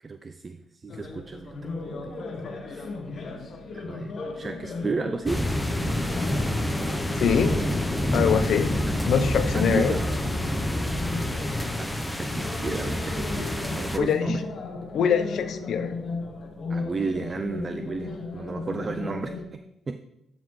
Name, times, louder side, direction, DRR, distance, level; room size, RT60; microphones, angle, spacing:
voice 1, 0.0-2.3 2.5-3.0 3.7-5.4 8.9-9.0 9.5-10.0 11.8-14.4 16.7-20.0, right 4 dB, 35° right, 8 dB, 0.3 m, -33 dB
sound 1, 0.9-19.4, left 3 dB, 50° left, 1.1 m, -36 dB
sound 2, 5.3-14.0, left 1 dB, 5° left, 0.7 m, -28 dB
voice 2, 7.2-7.6 8.1-8.8 9.1-9.9 14.0-14.3 14.9-15.9, left 7 dB, 65° left, 9 dB, 0.6 m, -23 dB
11.5 x 4.0 x 3.1 m, 0.87 s
cardioid pair, 90°, 0 cm